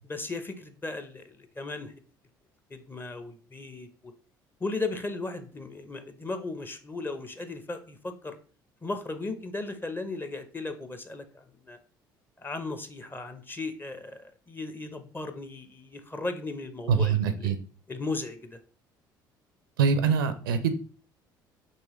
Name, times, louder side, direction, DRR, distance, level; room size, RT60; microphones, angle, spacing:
voice 1, 0.0-1.9 2.7-4.1 4.6-8.4 8.8-11.8 12.4-17.5 17.9-18.6, left 3 dB, 20° left, 9 dB, 0.7 m, -36 dB
voice 2, 16.9-17.6 19.8-20.7, right 6 dB, 75° right, 10 dB, 0.5 m, -24 dB
5.5 x 3.0 x 3.0 m, 0.40 s
figure-of-eight pair, 55°, 11 cm